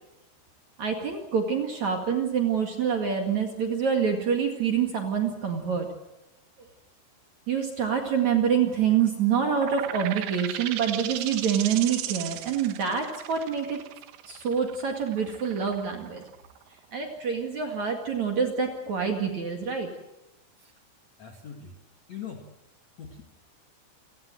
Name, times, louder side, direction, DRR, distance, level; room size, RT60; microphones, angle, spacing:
voice 1, 0.8-5.9 7.5-13.8 14.3-16.2 16.9-19.9, right 7 dB, 50° right, 3 dB, 2.6 m, -26 dB
sound 1, 9.4-16.8, right 13 dB, 80° right, 3.6 m, -36 dB
voice 2, 21.2-21.7 22.1-22.4 23.0-23.2, left 8 dB, 55° left, 3 dB, 2.0 m, -40 dB
29.0 x 18.0 x 7.7 m, 0.93 s
omnidirectional pair, 5.8 m